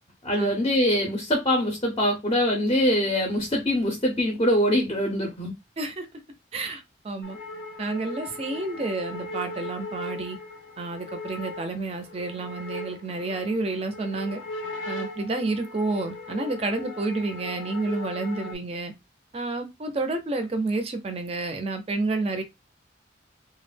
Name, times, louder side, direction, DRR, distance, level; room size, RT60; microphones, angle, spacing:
voice 1, 0.2-5.6, equal, 30° left, 0.5 m, -23 dB
voice 2, 6.5-7.4 7.8-10.4 10.8-14.4 14.9-18.9 19.3-22.4, right 2 dB, 30° right, 0.4 m, -30 dB
sound 1, 7.2-18.5, left 1 dB, 80° left, 0.5 m, -38 dB
2.3 x 2.0 x 3.2 m
head